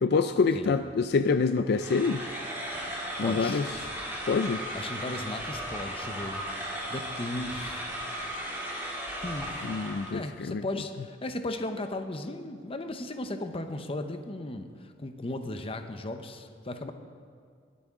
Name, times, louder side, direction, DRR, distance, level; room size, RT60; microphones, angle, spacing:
voice 1, 0.0-2.2 3.2-3.7 4.3-4.6 9.6-10.6, left 4 dB, 60° left, 9 dB, 0.4 m, -26 dB
voice 2, 0.5-0.8 2.9-3.6 4.7-6.4 6.9-7.9 9.2-9.5 10.1-16.9, left 2 dB, 30° left, 7 dB, 0.8 m, -36 dB
sound 1, 1.7-10.2, equal, 15° right, 2.7 m, -36 dB
22.5 x 8.4 x 3.7 m, 2.2 s
head